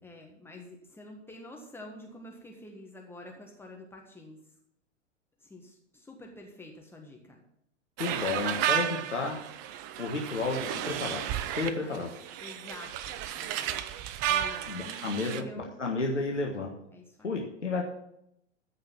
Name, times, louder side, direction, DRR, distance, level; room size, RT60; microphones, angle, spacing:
voice 1, 0.0-4.4 5.4-7.4 11.5-12.1 12.4-13.8 14.3-15.7 16.9-17.5, left 1 dB, 5° left, 0 dB, 1.5 m, -48 dB
voice 2, 8.0-9.4 10.0-11.3 11.6-12.1 14.7-16.7 17.2-17.8, left 3 dB, 80° left, 0 dB, 1.7 m, -32 dB
sound 1, 8.0-15.4, right 10 dB, 20° right, 0.3 m, -33 dB
14.0 x 5.4 x 7.3 m, 0.77 s
figure-of-eight pair, 100°, 36 cm